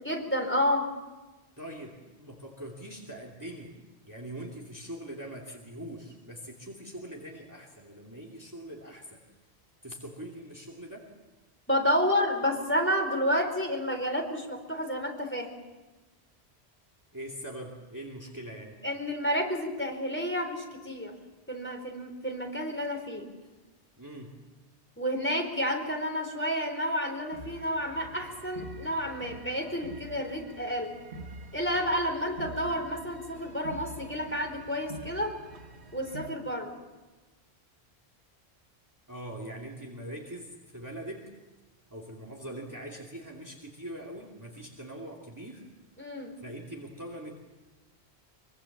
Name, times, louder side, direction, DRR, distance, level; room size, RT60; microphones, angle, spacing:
voice 1, 0.0-0.9 11.7-15.5 18.8-21.1 21.5-23.3 25.0-30.9 31.5-35.4 35.9-36.7 46.0-46.4, equal, 10° left, 2 dB, 4.3 m, -30 dB
voice 2, 1.6-3.8 4.1-9.2 9.8-11.1 17.1-18.8 24.0-24.4 39.1-41.3 41.9-45.6 46.4-47.4, right 1 dB, 15° right, -2 dB, 2.7 m, -42 dB
sound 1, 27.3-36.3, right 2 dB, 80° right, 2.1 m, -46 dB
24.5 x 24.0 x 7.3 m, 1.2 s
omnidirectional pair, 1.1 m